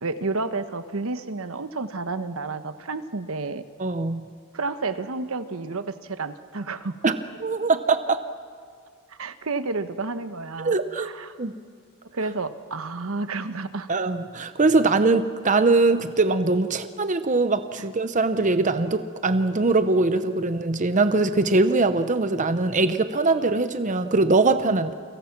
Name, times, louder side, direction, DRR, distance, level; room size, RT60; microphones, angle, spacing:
voice 1, 0.0-3.6 4.5-7.0 9.1-11.4 12.1-13.9 24.7-24.8, right 3 dB, 80° right, 10 dB, 1.1 m, -30 dB
voice 2, 3.8-4.2 7.0-7.1 7.4-8.2 10.6-11.1 11.4-11.5 13.9-24.9, right 3 dB, 35° right, 10 dB, 0.8 m, -22 dB
29.5 x 24.0 x 6.0 m, 2.1 s
head